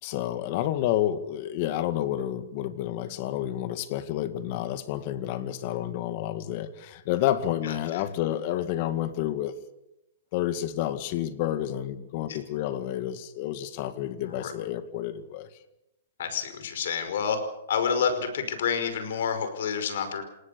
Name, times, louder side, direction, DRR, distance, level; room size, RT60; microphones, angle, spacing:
voice 1, 0.0-9.5 10.3-15.5, left 12 dB, 40° left, 11 dB, 2.0 m, -30 dB
voice 2, 7.6-8.0 12.3-12.4 14.2-14.5 16.2-17.4 17.7-20.2, left 6 dB, 65° left, 9 dB, 5.3 m, -29 dB
28.5 x 19.0 x 7.0 m, 0.88 s
hypercardioid pair, 160°, 0 cm